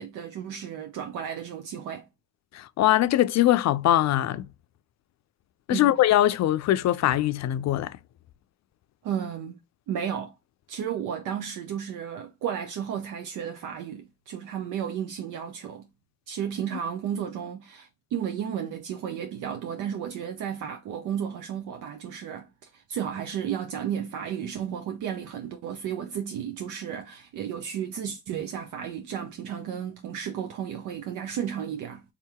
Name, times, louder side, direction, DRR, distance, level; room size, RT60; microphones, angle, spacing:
voice 1, 0.0-2.1 5.7-5.9 9.0-9.6 9.9-10.4 10.7-15.9 16.3-32.0, right 8 dB, 80° right, 0.7 m, -33 dB
voice 2, 2.5-4.5 5.7-8.0, left 13 dB, 65° left, 0.5 m, -22 dB
3.7 x 2.8 x 3.5 m
supercardioid pair, 50°, 30 cm